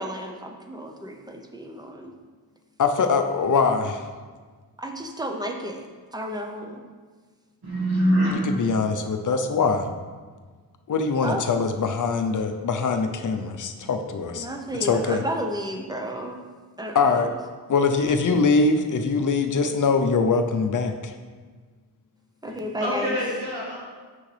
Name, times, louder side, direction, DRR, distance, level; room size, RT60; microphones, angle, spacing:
voice 1, 0.0-2.1 4.8-6.8 11.2-11.4 14.3-16.4 16.8-17.2 22.4-23.2, equal, 10° right, 3 dB, 0.7 m, -32 dB
voice 2, 2.8-4.1 8.3-9.9 10.9-14.5 14.8-15.2 16.9-17.3 17.7-21.1, left 4 dB, 55° left, 6 dB, 0.7 m, -23 dB
voice 3, 7.6-8.3 22.4-23.8, equal, 75° right, -6 dB, 1.7 m, -24 dB
7.0 x 6.3 x 3.3 m, 1.5 s
wide cardioid pair, 95°, 38 cm